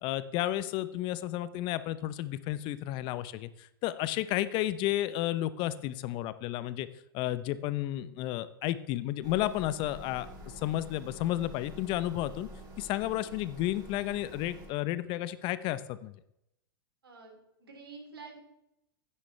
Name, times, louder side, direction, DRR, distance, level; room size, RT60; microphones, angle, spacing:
voice 1, 0.0-6.9 7.1-12.5 12.8-16.1, left 14 dB, 40° left, 15 dB, 0.7 m, -32 dB
sound 1, 9.2-14.7, equal, 35° right, 4.0 m, -48 dB
voice 2, 17.0-18.4, right 4 dB, 85° right, 3 dB, 3.3 m, -48 dB
15.0 x 9.9 x 3.3 m, 0.83 s
hypercardioid pair, 100°, 12 cm